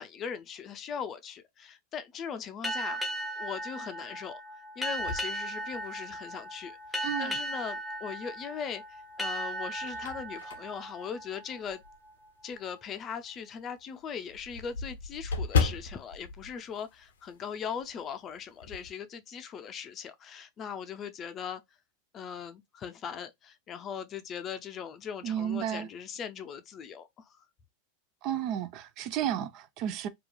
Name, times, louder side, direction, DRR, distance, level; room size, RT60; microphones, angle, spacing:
voice 1, 0.0-3.0 3.4-4.4 4.8-11.8 12.4-21.6 22.1-27.4, left 7 dB, 35° left, 0.5 m, -39 dB
sound 1, 2.6-11.9, right 1 dB, 5° left, 0.8 m, -37 dB
sound 2, 5.0-6.3 6.9-7.0 8.4-8.9 9.4-12.1 12.5-12.6 13.0-13.1 13.4-13.5 13.7-17.5 17.8-18.0 18.3-18.9, left 5 dB, 85° left, 0.5 m, -35 dB
voice 2, 7.0-7.4 25.2-25.9 28.2-30.1, right 10 dB, 50° right, 0.4 m, -32 dB
2.9 x 2.3 x 2.2 m
hypercardioid pair, 105°, 0 cm